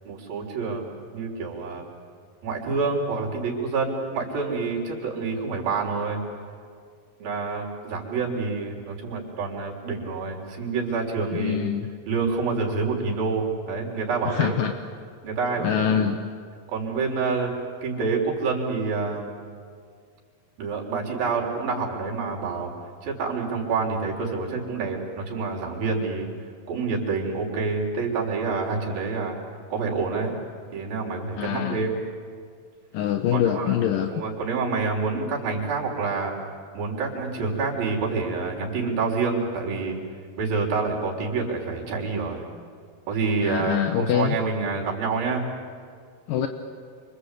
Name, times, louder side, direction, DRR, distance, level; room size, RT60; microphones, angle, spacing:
voice 1, 0.1-0.9 1.1-1.8 2.4-6.2 7.2-11.6 12.1-14.6 15.2-16.0 16.7-17.5 17.8-19.3 20.6-22.7 23.0-26.3 26.7-29.4 29.7-30.4 30.7-32.0 33.3-33.8 34.1-36.3 36.7-40.0 40.4-42.4 43.1-45.5, right 4 dB, 80° right, -1 dB, 5.5 m, -27 dB
voice 2, 11.3-11.9 14.3-14.7 15.6-16.2 31.4-31.9 32.9-34.1 43.4-44.4 46.3-46.5, left 9 dB, 75° left, 6 dB, 2.6 m, -24 dB
29.0 x 25.0 x 8.3 m, 2.1 s
omnidirectional pair, 4.1 m